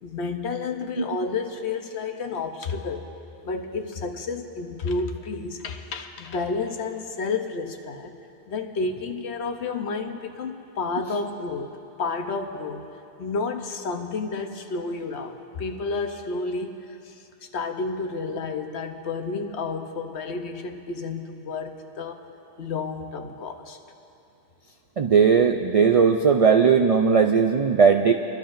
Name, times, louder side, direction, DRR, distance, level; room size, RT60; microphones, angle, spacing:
voice 1, 0.0-3.1 3.4-8.2 8.5-12.9 13.2-17.2 17.5-22.2 22.6-23.8, left 4 dB, 75° left, 5 dB, 1.1 m, -31 dB
voice 2, 25.0-28.1, right 6 dB, 60° right, 4 dB, 0.3 m, -18 dB
25.5 x 12.0 x 2.5 m, 2.8 s
omnidirectional pair, 1.1 m